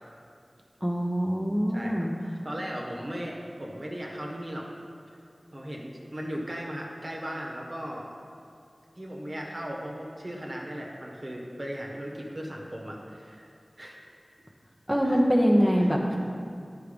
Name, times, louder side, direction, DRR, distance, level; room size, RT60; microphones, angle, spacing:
voice 1, 0.8-2.1 14.9-16.0, equal, 5° right, -2 dB, 0.8 m, -23 dB
voice 2, 1.7-4.7 5.5-8.1 9.0-13.5 13.8-14.0 15.0-15.2 16.1-16.2, equal, 50° right, -1 dB, 1.3 m, -37 dB
10.0 x 4.6 x 5.2 m, 2.4 s
wide cardioid pair, 45°, 0 cm